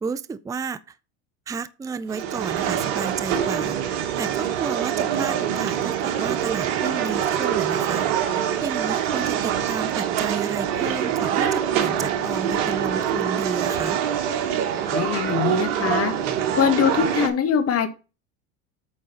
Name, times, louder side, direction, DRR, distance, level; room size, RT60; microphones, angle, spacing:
voice 1, 0.0-1.0 1.5-3.8 4.2-8.1 8.6-14.0, right 5 dB, 10° right, 0.4 m, -32 dB
sound 1, 2.1-17.3, right 9 dB, 80° right, 1.6 m, -24 dB
voice 2, 14.9-16.1 16.6-17.9, left 7 dB, 40° left, 1.6 m, -22 dB
8.8 x 3.9 x 5.7 m
supercardioid pair, 100°, 36 cm